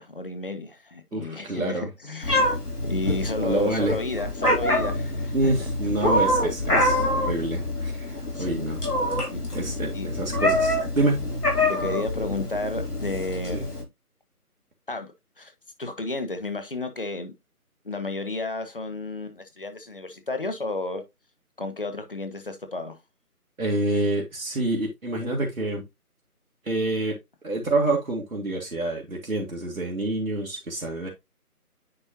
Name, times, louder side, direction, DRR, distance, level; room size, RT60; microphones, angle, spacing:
voice 1, 0.0-2.6 2.8-5.3 5.6-6.1 6.7-7.0 8.3-8.7 9.3-9.4 9.9-10.1 11.7-13.9 14.9-15.5 15.8-17.3 17.8-21.0 21.6-23.0, left 2 dB, 35° left, 1.2 m, -32 dB
voice 2, 1.1-1.9 3.4-4.0 5.3-8.8 9.5-11.3 13.5-13.6 23.6-25.8 26.6-27.2 27.4-31.1, right 2 dB, 65° right, 2.0 m, -27 dB
Meow, 2.2-13.8, left 1 dB, 80° left, 3.6 m, -26 dB
9.8 x 4.2 x 2.9 m
figure-of-eight pair, 160°, 45 cm